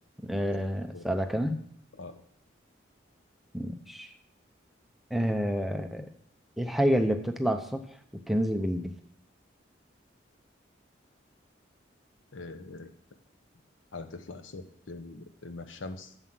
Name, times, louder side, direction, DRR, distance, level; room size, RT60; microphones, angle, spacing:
voice 1, 0.2-1.6 3.5-4.1 5.1-6.1 6.6-7.8 8.1-8.9, equal, ahead, 6 dB, 0.6 m, -28 dB
voice 2, 12.3-12.9 13.9-16.1, left 3 dB, 85° left, 9 dB, 0.9 m, -42 dB
7.6 x 7.1 x 6.0 m, 0.65 s
head